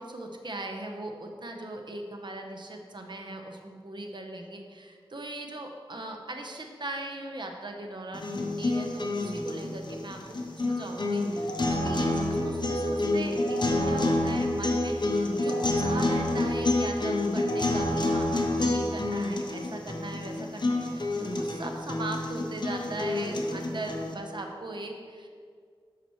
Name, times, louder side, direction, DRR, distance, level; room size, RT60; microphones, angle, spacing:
voice 1, 0.0-25.3, right 2 dB, 55° right, 2 dB, 0.8 m, -39 dB
sound 1, 8.1-24.1, left 2 dB, 50° left, 0.8 m, -28 dB
8.3 x 5.9 x 3.1 m, 2.1 s
wide cardioid pair, 60°, 10 cm